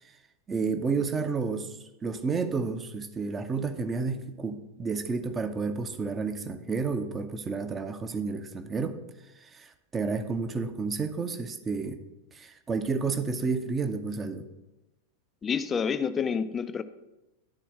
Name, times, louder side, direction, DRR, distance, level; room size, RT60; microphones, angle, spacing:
voice 1, 0.5-9.0 9.4-12.0 12.3-14.5, right 4 dB, 20° right, 0.7 m, -31 dB
voice 2, 15.4-16.8, left 6 dB, 20° left, 0.5 m, -28 dB
11.0 x 4.2 x 5.7 m
figure-of-eight pair, 90°, 0 cm